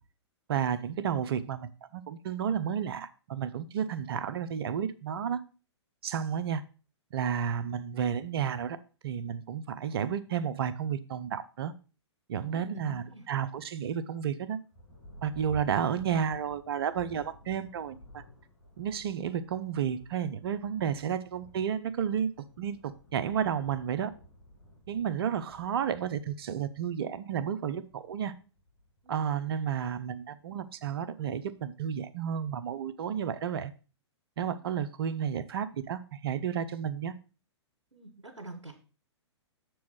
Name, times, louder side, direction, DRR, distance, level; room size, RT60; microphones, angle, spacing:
voice 1, 0.5-5.4 6.0-6.6 7.1-8.8 9.0-11.7 12.3-14.6 15.2-18.2 18.8-24.1 24.9-28.3 29.1-33.7 34.4-37.1, right 8 dB, 55° right, 13 dB, 0.7 m, -32 dB
voice 2, 12.4-13.3 29.0-29.4 37.9-38.7, right 2 dB, 85° right, 2 dB, 1.7 m, -46 dB
Thunder, 14.7-30.8 31.5-31.6 32.2-32.6, equal, 55° left, 3.6 m, -53 dB
7.1 x 4.6 x 6.2 m, 0.36 s
figure-of-eight pair, 115°, 15 cm